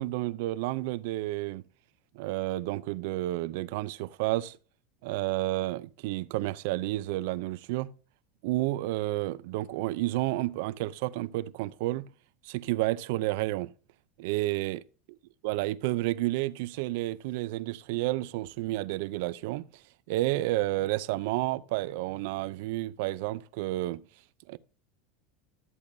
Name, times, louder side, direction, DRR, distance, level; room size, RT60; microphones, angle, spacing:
voice 1, 0.0-1.6 2.1-4.6 5.0-7.9 8.4-12.1 12.4-13.7 14.2-14.8 15.4-19.6 20.1-24.0 24.5-24.6, right 17 dB, 70° right, 0.5 m, -30 dB
12.5 x 8.3 x 2.7 m
supercardioid pair, 110°, 0 cm